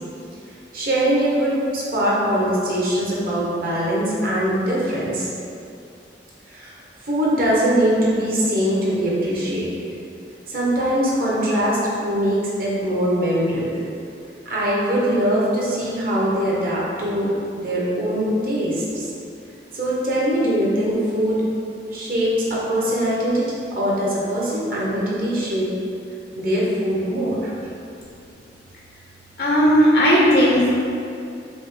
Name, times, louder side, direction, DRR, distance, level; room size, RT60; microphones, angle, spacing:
voice 1, 0.7-5.3 6.5-6.7 7.0-9.7 10.5-13.8 14.4-19.1 19.7-21.4 21.9-23.4 23.7-25.7 26.4-27.5, equal, 55° right, -6 dB, 0.9 m, -22 dB
voice 2, 29.4-30.7, equal, 60° left, -5 dB, 0.5 m, -15 dB
5.1 x 2.1 x 3.2 m, 2.6 s
head